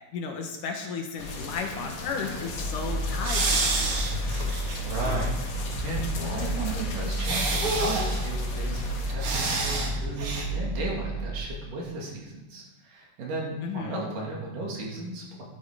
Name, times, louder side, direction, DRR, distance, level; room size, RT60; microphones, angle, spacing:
voice 1, 0.1-4.1 13.6-14.0, left 5 dB, 70° left, 3 dB, 2.5 m, -34 dB
sound 1, 1.2-9.1, left 3 dB, 45° left, 1.8 m, -38 dB
sound 2, 2.6-11.4, right 1 dB, 5° right, 4.7 m, -31 dB
sound 3, 3.2-5.3 5.6-5.7 7.2-8.3 9.2-9.9 10.2-10.5, right 3 dB, 45° right, 2.1 m, -28 dB
voice 2, 4.6-15.4, right 2 dB, 65° right, -2 dB, 3.9 m, -35 dB
12.0 x 11.0 x 4.9 m, 1.1 s
omnidirectional pair, 4.2 m